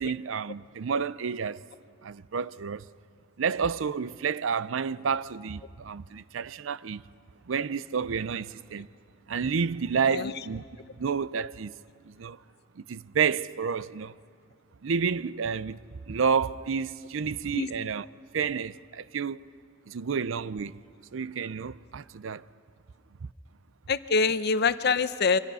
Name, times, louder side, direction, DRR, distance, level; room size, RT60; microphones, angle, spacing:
voice 1, 0.0-1.6 2.0-2.9 3.4-7.0 7.5-8.9 9.3-10.6 11.0-11.7 12.0-12.4 12.8-14.1 14.8-15.8 16.1-18.1 18.3-19.4 19.9-20.8 21.1-22.5, right 6 dB, 80° right, 0.5 m, -30 dB
voice 2, 23.9-25.4, left 5 dB, 55° left, 0.7 m, -25 dB
27.5 x 25.5 x 5.6 m
head